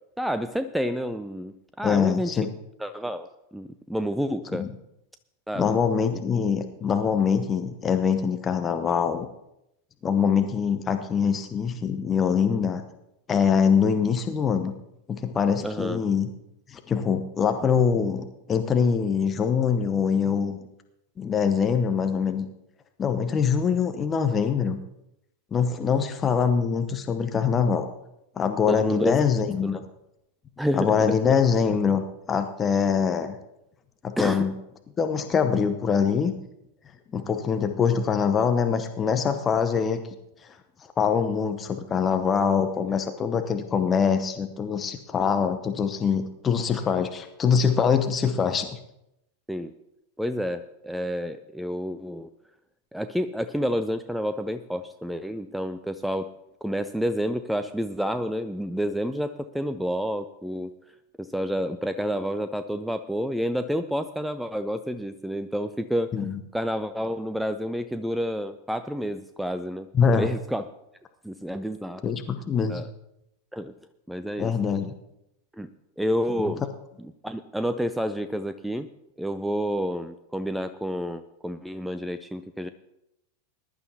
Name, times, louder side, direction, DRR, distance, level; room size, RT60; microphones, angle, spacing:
voice 1, 0.2-2.4 2.8-4.7 5.5-5.7 15.6-16.0 25.7-25.8 28.7-29.2 29.6-29.8 30.6-31.2 34.2-34.5 49.5-49.7 50.2-52.3 52.9-56.3 56.6-60.8 61.2-66.1 66.5-69.9 70.1-70.6 71.2-72.0 72.7-72.9 73.5-73.7 74.1-74.5 75.6-75.7 76.0-76.6 77.0-78.9 79.2-82.7, equal, ahead, 11 dB, 0.4 m, -29 dB
voice 2, 1.8-2.5 4.5-4.7 5.5-9.3 10.0-12.8 13.3-14.7 15.1-16.3 16.7-20.6 21.2-22.5 23.0-24.8 25.5-27.9 28.4-29.8 30.7-33.4 34.0-34.5 35.0-36.3 37.1-40.0 40.4-40.6 41.0-48.7 66.1-66.4 69.9-70.3 72.0-72.8 74.4-74.9 76.4-76.5, left 6 dB, 20° left, 7 dB, 0.9 m, -24 dB
20.5 x 11.5 x 2.8 m, 0.85 s
figure-of-eight pair, 90°, 0 cm